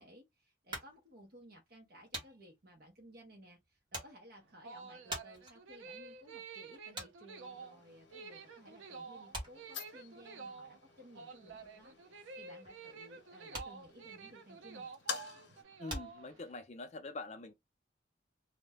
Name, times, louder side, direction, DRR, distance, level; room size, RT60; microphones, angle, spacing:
voice 1, 0.0-14.9, equal, 50° right, 0.7 m, -58 dB
sound 1, 0.7-8.6 8.8-16.9, right 1 dB, 25° right, 0.9 m, -48 dB
sound 2, 4.4-16.5, right 4 dB, 90° right, 0.5 m, -50 dB
sound 3, 7.4-15.6, left 6 dB, 70° left, 0.8 m, -50 dB
voice 2, 15.8-17.5, left 3 dB, 35° left, 0.4 m, -45 dB
2.6 x 2.1 x 3.4 m
head